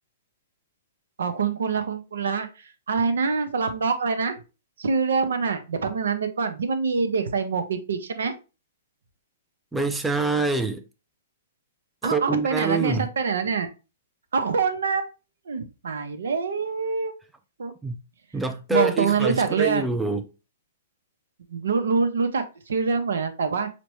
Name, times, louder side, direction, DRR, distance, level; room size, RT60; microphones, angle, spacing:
voice 1, 1.2-2.5 2.9-4.4 4.8-8.3 12.0-13.7 14.3-15.1 15.5-17.1 17.6-17.7 18.7-19.9 21.5-23.7, right 5 dB, 85° right, 0.7 m, -25 dB
voice 2, 9.7-10.8 12.0-13.1 17.8-18.0 18.3-20.3, right 3 dB, 5° right, 0.3 m, -25 dB
5.0 x 2.2 x 3.0 m
hypercardioid pair, 145°, 0 cm